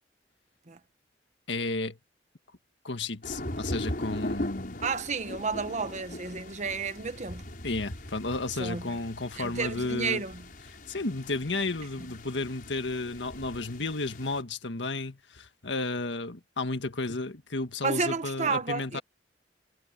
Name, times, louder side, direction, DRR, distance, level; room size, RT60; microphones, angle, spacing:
voice 1, 1.5-2.0 2.8-4.8 7.6-10.2 10.9-19.0, left 3 dB, 85° left, 1.7 m, -33 dB
sound 1, 3.2-14.4, left 1 dB, 50° left, 5.6 m, -39 dB
voice 2, 4.8-7.5 8.6-8.8 9.4-10.4 17.8-19.0, right 4 dB, 40° right, 1.1 m, -31 dB
head